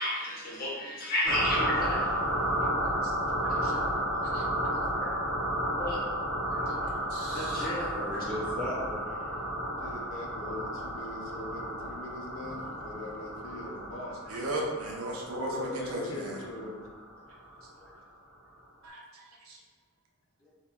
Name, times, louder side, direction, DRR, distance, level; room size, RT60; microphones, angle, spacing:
voice 1, 0.0-2.2 5.0-5.1 5.8-6.0 7.3-8.2, left 1 dB, 45° left, -5 dB, 0.8 m, -32 dB
sound 1, 1.2-17.5, equal, 60° right, 1.0 m, -32 dB
voice 2, 3.4-3.8 4.3-4.4 6.5-6.7 7.1-7.7 14.3-16.4 18.8-19.6, right 1 dB, 80° right, -1 dB, 0.6 m, -37 dB
voice 3, 6.4-7.1 7.6-7.7 7.9-9.4 9.7-9.8 12.4-13.0 17.8-18.0 20.4-20.5, left 1 dB, 5° left, -7 dB, 0.6 m, -41 dB
voice 4, 9.8-14.5 15.5-16.9, left 1 dB, 60° left, 0 dB, 0.4 m, -41 dB
2.6 x 2.2 x 3.4 m, 1.3 s
head